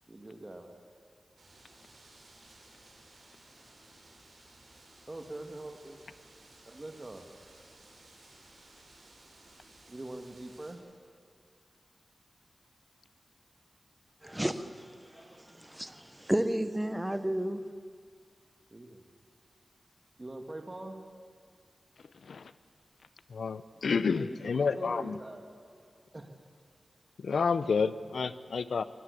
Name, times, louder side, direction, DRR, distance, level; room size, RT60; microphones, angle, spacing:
voice 1, 0.1-0.9 5.1-6.0 6.7-7.3 9.7-10.8 18.7-19.0 20.2-21.0 24.1-25.5 26.1-26.3, right 2 dB, 25° right, 4 dB, 1.9 m, -43 dB
sound 1, 1.4-10.7, right 2 dB, 70° right, 5.8 m, -57 dB
voice 2, 14.2-17.6, right 1 dB, 10° right, 11 dB, 1.1 m, -33 dB
voice 3, 23.3-25.2 27.2-28.8, left 5 dB, 85° left, 15 dB, 0.8 m, -29 dB
23.5 x 17.0 x 8.4 m, 2.2 s
wide cardioid pair, 100°, 0 cm